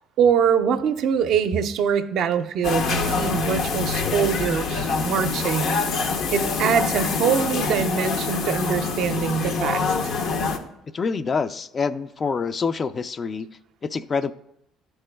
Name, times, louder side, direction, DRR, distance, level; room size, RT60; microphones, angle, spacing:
voice 1, 0.2-5.8 6.3-10.1, right 7 dB, 65° right, 8 dB, 0.5 m, -23 dB
sound 1, 2.6-10.6, left 4 dB, 70° left, 0.7 m, -25 dB
voice 2, 10.9-13.5 13.8-14.3, left 5 dB, 40° left, 12 dB, 0.3 m, -26 dB
10.5 x 4.4 x 2.2 m, 0.78 s
hypercardioid pair, 65°, 0 cm